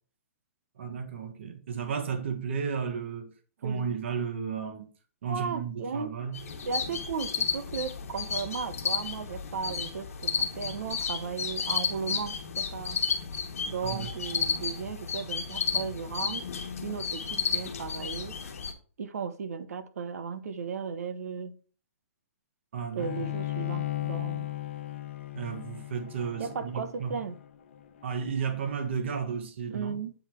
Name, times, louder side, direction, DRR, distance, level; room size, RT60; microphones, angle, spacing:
voice 1, 0.8-3.3 3.6-4.9 5.2-6.4 13.8-14.1 22.7-23.2 25.3-27.2 28.0-30.0, right 6 dB, 50° right, 1.4 m, -33 dB
voice 2, 5.3-6.1 6.6-13.0 13.7-16.4 16.8-18.3 19.0-21.5 22.9-24.5 26.4-27.3 29.7-30.1, right 6 dB, 80° right, 1.0 m, -35 dB
sound 1, 6.3-18.7, left 6 dB, 75° left, 1.3 m, -32 dB
Bowed string instrument, 23.0-28.3, left 15 dB, 50° left, 0.8 m, -36 dB
8.0 x 3.9 x 4.5 m
hypercardioid pair, 175°, 8 cm